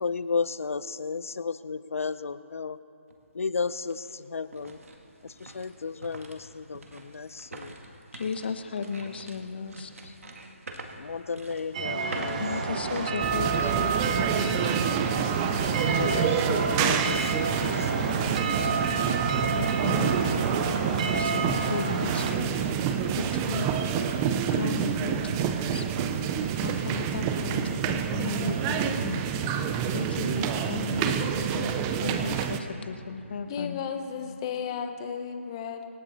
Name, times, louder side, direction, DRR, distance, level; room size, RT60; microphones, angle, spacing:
voice 1, 0.0-2.8 3.3-4.8 5.2-7.8 10.0-10.1 11.0-12.4 13.6-13.7 15.9-18.4, left 5 dB, 75° left, 15 dB, 0.7 m, -33 dB
sound 1, 3.1-3.2 3.7-14.6 15.0-15.1 15.7-16.1, right 2 dB, 75° right, 1.9 m, -45 dB
voice 2, 8.1-9.9 12.4-14.9 19.0-19.2 19.5-20.2 21.2-22.6 23.1-23.7 24.3-25.8 26.6-27.6 27.9-29.2 29.9-33.8, left 5 dB, 45° left, 8 dB, 1.0 m, -35 dB
sound 2, 11.7-22.3, right 4 dB, 30° right, 1.2 m, -29 dB
sound 3, 13.2-32.6, right 8 dB, 15° right, 0.4 m, -28 dB
voice 3, 33.5-35.9, left 7 dB, 20° left, 6 dB, 1.0 m, -34 dB
25.5 x 9.8 x 4.3 m, 2.7 s
hypercardioid pair, 165°, 7 cm